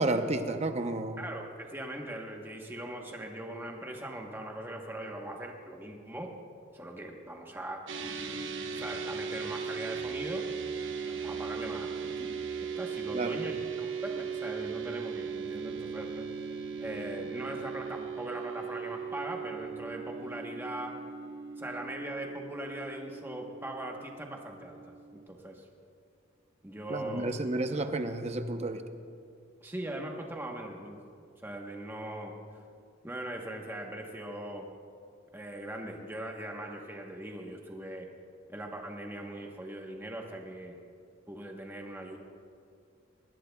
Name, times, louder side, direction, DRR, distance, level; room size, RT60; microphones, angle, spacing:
voice 1, 0.0-1.2 13.1-13.5 26.9-28.8, right 2 dB, 30° right, 7 dB, 0.7 m, -31 dB
voice 2, 1.2-6.3 6.7-10.5 11.0-12.3 12.6-16.3 16.8-20.9 21.6-25.7 26.6-27.3 29.6-31.0 31.4-32.3 33.0-34.7 35.3-38.1 38.5-40.8 41.3-42.2, right 1 dB, 10° right, 1 dB, 1.0 m, -40 dB
sound 1, 7.9-25.3, right 6 dB, 65° right, 1.0 m, -38 dB
20.0 x 19.0 x 2.3 m, 2.4 s
head